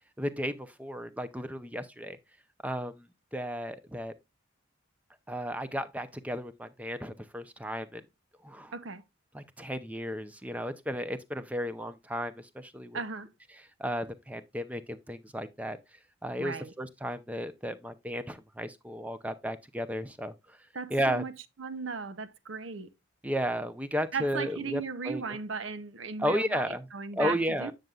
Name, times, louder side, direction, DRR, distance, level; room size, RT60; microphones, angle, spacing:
voice 1, 0.2-2.2 2.6-3.1 3.3-4.1 5.3-8.0 8.4-8.7 9.3-13.0 13.8-15.8 16.2-20.3 20.9-21.2 23.2-25.2 26.2-26.8 27.2-27.7, equal, 5° right, 0.6 m, -33 dB
voice 2, 8.7-9.0 12.9-13.3 16.4-16.7 20.7-21.3 21.6-22.9 24.1-27.7, right 5 dB, 70° right, 0.8 m, -36 dB
9.0 x 6.7 x 2.4 m
head